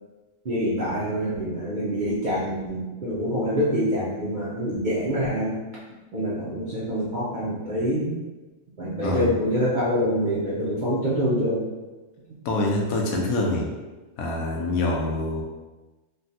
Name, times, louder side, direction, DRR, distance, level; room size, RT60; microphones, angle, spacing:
voice 1, 0.4-5.6 6.1-8.2 8.8-11.6, equal, 60° right, -8 dB, 0.5 m, -25 dB
voice 2, 12.4-13.7 14.2-15.4, left 2 dB, 85° left, -1 dB, 1.1 m, -25 dB
3.3 x 2.3 x 2.7 m, 1.2 s
omnidirectional pair, 1.5 m